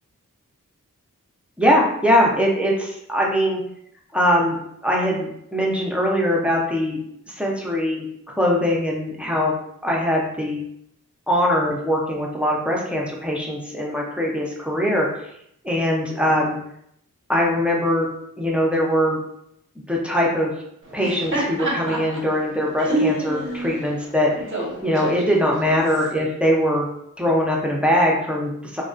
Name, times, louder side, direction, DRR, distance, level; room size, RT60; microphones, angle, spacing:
voice 1, 1.6-3.6 4.1-4.6 4.8-7.0 7.3-8.1 8.4-9.5 9.8-10.6 11.3-15.1 15.6-16.6 17.3-18.1 18.4-19.2 19.9-20.5 20.9-24.3 24.8-26.9 27.2-28.8, equal, 5° right, -3 dB, 0.5 m, -21 dB
Laughter, 20.8-26.1, right 1 dB, 40° right, 0.7 m, -28 dB
2.2 x 2.2 x 2.4 m, 0.73 s
wide cardioid pair, 55°, 33 cm